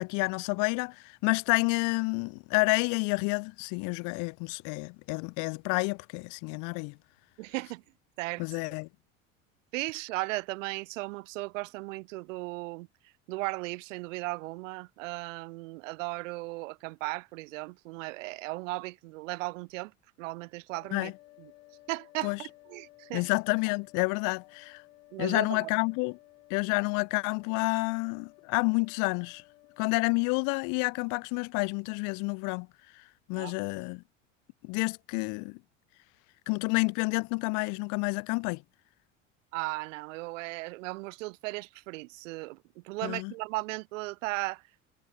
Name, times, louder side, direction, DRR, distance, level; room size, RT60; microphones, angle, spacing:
voice 1, 0.0-6.9 8.4-8.9 20.9-21.1 22.2-22.4 23.1-24.8 25.2-26.2 26.5-29.4 29.8-32.7 33.3-34.0 34.6-35.6 36.5-38.6 43.0-43.3, left 32 dB, 55° left, 0.4 m, -29 dB
voice 2, 7.4-7.8 8.2-8.4 9.7-12.9 13.3-19.9 20.2-21.1 21.4-21.5 21.9-23.3 25.1-25.7 33.3-33.5 39.5-44.6, right 23 dB, 75° right, 0.5 m, -36 dB
sound 1, 20.7-30.5, left 20 dB, 75° left, 1.7 m, -57 dB
hypercardioid pair, 80°, 38 cm